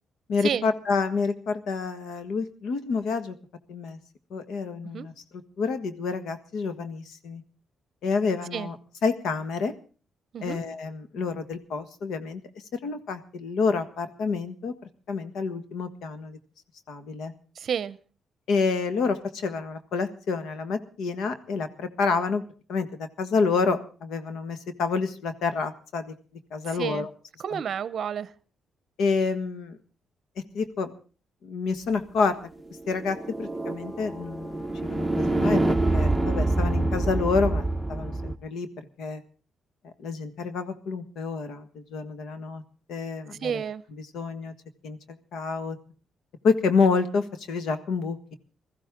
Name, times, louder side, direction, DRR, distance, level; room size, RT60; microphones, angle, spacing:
voice 1, 0.3-3.3 3.7-4.0 4.3-5.1 5.6-7.4 8.0-8.8 9.0-9.7 10.4-12.4 12.7-14.7 15.1-16.4 16.9-17.3 18.5-22.4 22.7-26.1 26.5-27.1 27.5-27.6 29.0-29.8 30.5-30.9 31.4-32.4 32.9-35.6 35.9-38.7 39.0-39.2 40.0-42.6 42.9-43.6 44.1-44.5 44.8-45.0 45.3-45.8 46.4-48.3, left 4 dB, 75° left, 1.6 m, -28 dB
voice 2, 17.6-18.0 26.6-27.1 27.4-28.3 43.4-43.8, right 8 dB, 55° right, 0.7 m, -30 dB
sound 1, 32.8-38.3, right 2 dB, 5° right, 0.9 m, -26 dB
21.0 x 14.5 x 3.7 m
cardioid pair, 115°, 0 cm